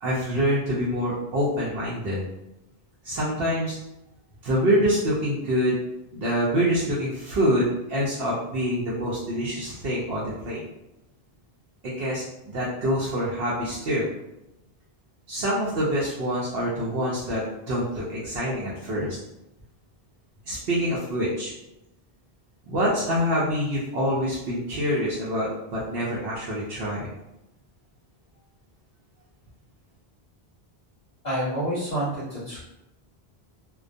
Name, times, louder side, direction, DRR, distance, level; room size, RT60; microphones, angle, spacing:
voice 1, 0.0-2.2 3.0-3.8 4.4-5.8 6.1-10.6 11.8-14.1 15.3-19.2 20.4-21.5 22.7-27.1, equal, 75° right, -7 dB, 0.8 m, -26 dB
voice 2, 31.2-32.6, right 1 dB, 50° left, -8 dB, 0.7 m, -28 dB
2.2 x 2.2 x 2.5 m, 0.91 s
omnidirectional pair, 1.0 m